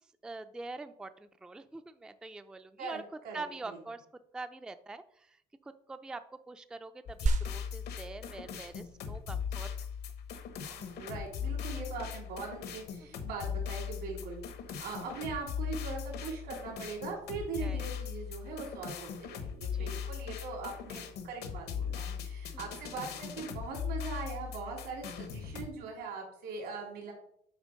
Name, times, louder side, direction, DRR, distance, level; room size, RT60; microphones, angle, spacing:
voice 1, 0.2-3.0 3.3-4.1 4.3-9.9 17.6-17.9 19.7-20.1, right 3 dB, 5° right, 10 dB, 0.3 m, -45 dB
voice 2, 2.8-3.8 10.6-27.1, right 4 dB, 85° right, -1 dB, 3.2 m, -41 dB
sound 1, 7.1-25.7, left 7 dB, 75° left, 1.0 m, -39 dB
sound 2, 7.3-17.2, right 3 dB, 45° right, 0.6 m, -41 dB
8.1 x 3.4 x 5.1 m, 0.68 s
cardioid pair, 110°, 17 cm